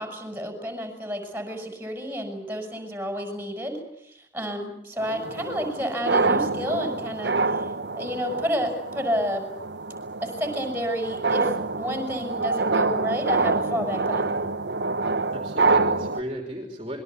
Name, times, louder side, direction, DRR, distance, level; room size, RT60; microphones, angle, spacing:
voice 1, 0.0-7.7 7.9-9.5 10.2-14.4, equal, 10° right, 5 dB, 6.2 m, -30 dB
sound 1, 5.0-16.2, right 3 dB, 65° right, 1.1 m, -26 dB
voice 2, 15.1-17.0, equal, 30° right, 2 dB, 3.4 m, -36 dB
26.5 x 22.0 x 8.2 m, 0.76 s
head